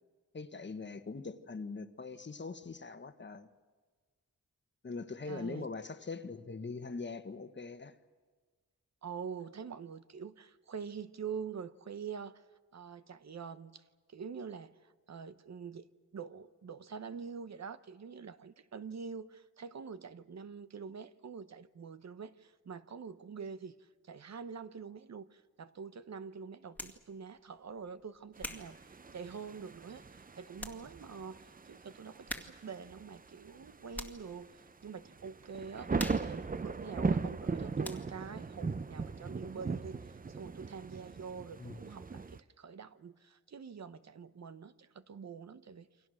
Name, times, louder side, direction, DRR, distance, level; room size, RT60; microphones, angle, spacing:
voice 1, 0.3-3.5 4.8-8.0 41.6-41.8, left 4 dB, 35° left, 1.3 m, -42 dB
voice 2, 5.3-5.7 9.0-12.4 12.7-13.8 14.1-15.8 16.1-23.7 24.0-42.2 42.6-45.9, right 6 dB, 60° right, 0.9 m, -45 dB
sound 1, 26.7-27.1 27.7-29.7 30.2-30.3 30.6-30.9 31.2-31.3 32.3-32.8 33.1-34.3 34.8-35.1 35.4-37.5 37.8-38.3, left 1 dB, 5° left, 1.9 m, -45 dB
sound 2, 28.4-42.4, right 4 dB, 30° right, 0.7 m, -39 dB
29.0 x 24.5 x 6.4 m
wide cardioid pair, 115°, 31 cm